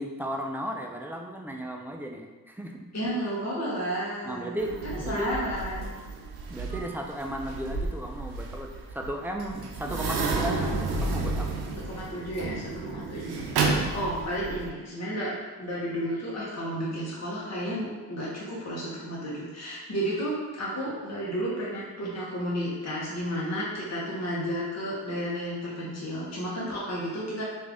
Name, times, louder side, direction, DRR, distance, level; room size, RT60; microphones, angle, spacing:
voice 1, 0.0-2.8 4.2-5.3 6.5-10.7 11.0-11.5, equal, 5° right, 1 dB, 0.5 m, -35 dB
voice 2, 2.9-4.6 4.8-5.9 11.8-27.4, equal, 40° left, -7 dB, 1.2 m, -32 dB
sound 1, 4.6-14.7, right 3 dB, 75° right, 0.7 m, -31 dB
3.2 x 2.6 x 3.5 m, 1.3 s
supercardioid pair, 45°, 39 cm